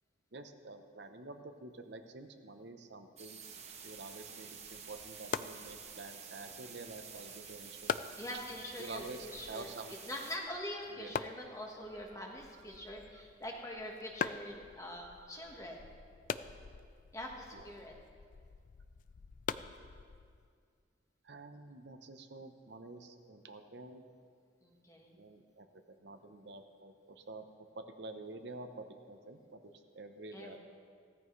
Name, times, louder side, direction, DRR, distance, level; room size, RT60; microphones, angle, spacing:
voice 1, 0.3-3.4 3.8-7.9 8.8-10.0 10.9-11.1 11.9-12.2 12.7-12.9 13.1-13.2 15.0-15.3 17.5-17.7 21.2-24.0 25.2-25.7 26.0-27.5 27.7-30.6, right 2 dB, 60° right, 6 dB, 0.8 m, -49 dB
sound 1, 3.2-10.4, right 6 dB, 35° right, 1.1 m, -50 dB
sound 2, 4.6-20.5, left 6 dB, 45° left, 0.3 m, -44 dB
voice 2, 8.2-9.7 10.0-15.8 17.1-18.0 24.6-25.1 30.3-30.6, left 1 dB, 15° left, 0 dB, 1.4 m, -44 dB
16.5 x 14.0 x 3.2 m, 2.1 s
head